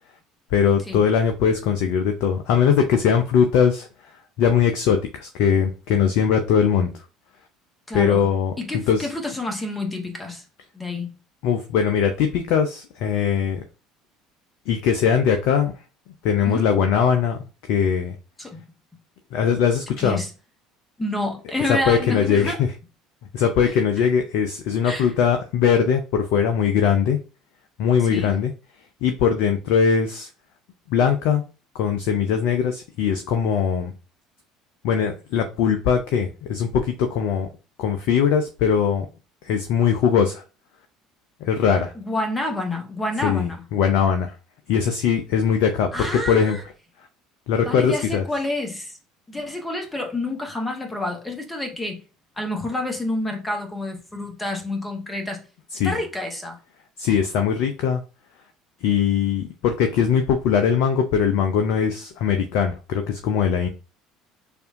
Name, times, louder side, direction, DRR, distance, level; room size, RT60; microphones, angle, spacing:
voice 1, 0.5-3.9 4.4-6.9 7.9-8.5 8.9-9.1 11.4-13.6 14.7-15.7 16.2-17.4 17.7-18.1 19.3-20.2 21.7-22.5 23.3-27.2 27.8-28.5 29.0-30.3 30.9-31.4 31.7-33.9 34.8-37.5 37.8-39.1 39.4-40.4 41.4-41.9 43.2-44.3 44.7-46.6 47.5-48.2 55.7-56.0 57.0-58.0 58.8-63.7, left 7 dB, 55° left, 0.5 m, -20 dB
voice 2, 7.9-8.3 8.6-10.4 10.7-11.1 16.4-16.8 18.4-18.6 20.0-20.3 21.0-22.6 23.7-23.8 24.8-25.1 28.0-28.4 41.9-43.6 45.9-46.6 47.6-49.0 49.3-52.0 52.4-55.4 55.8-56.6, left 1 dB, 15° left, 1.2 m, -28 dB
6.6 x 2.6 x 2.6 m
figure-of-eight pair, 60°, 0 cm